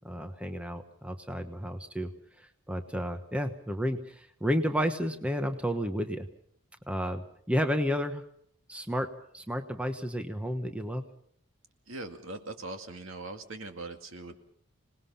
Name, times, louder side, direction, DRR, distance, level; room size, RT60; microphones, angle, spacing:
voice 1, 0.0-2.1 2.4-6.3 6.9-8.2 8.7-11.0, equal, 5° right, 7 dB, 1.1 m, -31 dB
voice 2, 11.9-14.4, right 2 dB, 75° right, 6 dB, 2.2 m, -41 dB
26.5 x 19.5 x 5.7 m, 0.65 s
head